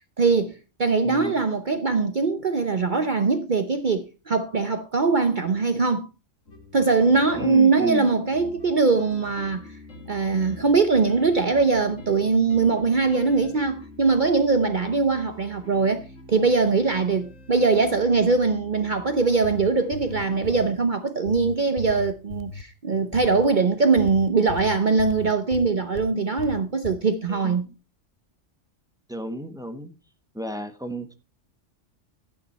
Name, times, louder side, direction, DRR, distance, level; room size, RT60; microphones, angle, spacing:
voice 1, 0.2-6.1 6.7-9.7 10.1-16.0 16.3-27.7, right 4 dB, 45° right, 0.9 m, -22 dB
sound 1, 6.5-20.8, left 2 dB, 80° left, 2.6 m, -45 dB
voice 2, 7.4-8.1 27.3-27.6 29.1-29.9 30.3-31.1, right 1 dB, 5° right, 1.1 m, -33 dB
sound 2, 19.3-20.7 21.3-22.7 23.1-23.5 24.0-26.1 26.4-27.0, left 5 dB, 50° left, 0.7 m, -37 dB
12.0 x 8.9 x 4.2 m
omnidirectional pair, 1.3 m